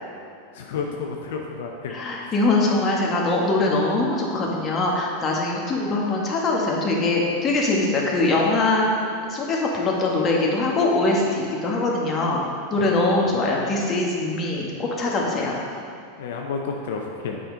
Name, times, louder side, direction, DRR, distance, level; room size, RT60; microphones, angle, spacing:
voice 1, 0.5-2.0 12.8-13.3 14.6-14.7 16.2-17.4, left 5 dB, 75° left, 1 dB, 0.6 m, -31 dB
voice 2, 1.9-8.8 9.3-12.4 12.7-15.5, left 2 dB, 30° left, -2 dB, 1.4 m, -22 dB
7.7 x 5.1 x 3.9 m, 2.5 s
hypercardioid pair, 110°, 0 cm